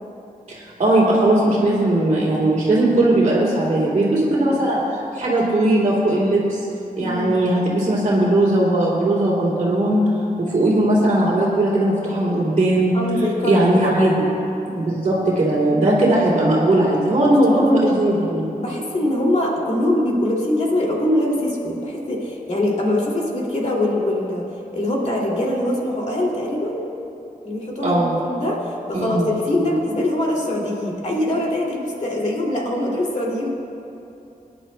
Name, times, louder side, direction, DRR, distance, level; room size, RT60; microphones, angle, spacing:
voice 1, 0.5-6.6 7.0-10.0 10.4-12.9 13.5-14.3 14.7-18.4 27.8-28.2 28.9-29.3, right 1 dB, 45° right, -10 dB, 2.7 m, -18 dB
voice 2, 7.0-7.4 12.9-13.9 15.7-16.0 17.5-18.0 18.6-24.4 24.7-26.8 27.4-33.5, left 1 dB, 50° left, -2 dB, 2.4 m, -23 dB
25.0 x 10.5 x 2.2 m, 2.8 s
wide cardioid pair, 130°, 15 cm